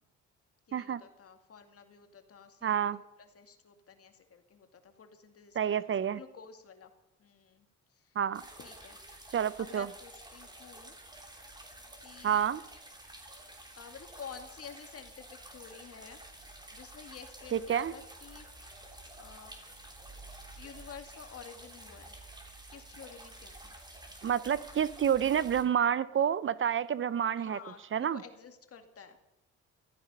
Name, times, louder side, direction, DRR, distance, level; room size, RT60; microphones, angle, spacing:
voice 1, 0.7-2.8 3.2-6.9 7.2-8.2 8.6-9.3 9.6-11.0 12.0-12.5 13.8-16.2 16.7-19.5 20.6-22.2 22.7-23.7 27.4-29.2, left 6 dB, 50° left, 7 dB, 2.2 m, -51 dB
voice 2, 2.6-3.0 5.6-6.2 8.2-8.4 9.3-9.9 12.2-12.6 17.5-17.9 24.2-27.6 27.9-28.2, right 9 dB, 45° right, 18 dB, 0.6 m, -29 dB
sound 1, 8.3-25.6, right 1 dB, 15° right, 3.2 m, -50 dB
16.0 x 14.0 x 5.4 m, 0.95 s
cardioid pair, 90°, 30 cm